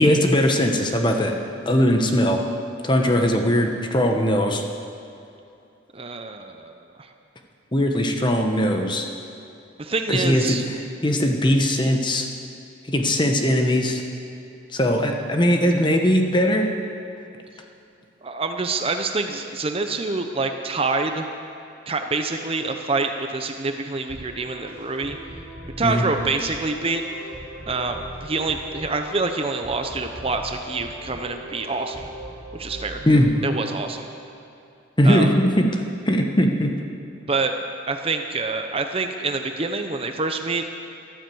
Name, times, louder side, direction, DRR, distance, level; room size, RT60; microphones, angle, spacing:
voice 1, 0.0-1.3 1.7-2.4 2.8-4.6 7.7-9.1 10.1-10.6 11.0-12.3 12.9-14.0 14.7-16.7 25.8-26.0 33.0-33.3 35.0-35.8 36.1-36.7, equal, 25° left, 3 dB, 1.2 m, -19 dB
voice 2, 5.9-6.7 7.0-7.1 9.8-10.6 18.2-21.3 21.9-25.2 25.8-27.0 27.7-32.1 32.5-33.1 33.4-34.1 35.0-35.3 37.3-37.5 37.9-40.6, right 3 dB, 30° right, 5 dB, 0.7 m, -26 dB
sound 1, 24.1-34.2, right 1 dB, 45° left, 3.3 m, -40 dB
13.5 x 13.0 x 7.8 m, 2.7 s
head